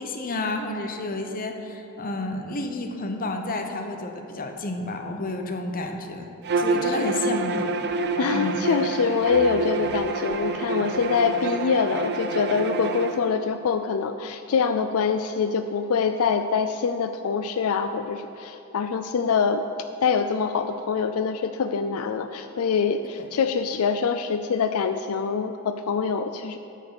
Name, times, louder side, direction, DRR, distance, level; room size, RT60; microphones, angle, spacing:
voice 1, 0.0-6.3 6.6-7.7 8.3-8.6 23.2-23.3, left 2 dB, 40° left, 4 dB, 0.9 m, -30 dB
Bowed string instrument, 6.4-13.2, right 3 dB, 50° right, 0.6 m, -27 dB
voice 2, 8.2-19.6 20.0-26.6, left 5 dB, 80° left, 8 dB, 0.4 m, -24 dB
9.5 x 6.5 x 6.9 m, 2.9 s
head